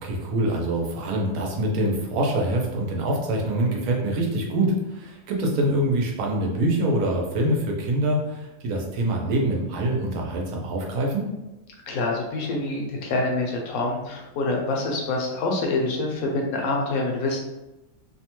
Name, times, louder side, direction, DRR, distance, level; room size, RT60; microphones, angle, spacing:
voice 1, 0.0-11.3, right 1 dB, 80° right, 0 dB, 1.1 m, -25 dB
voice 2, 11.9-17.4, left 2 dB, 75° left, 1 dB, 1.0 m, -26 dB
2.8 x 2.1 x 2.9 m, 0.99 s
omnidirectional pair, 1.5 m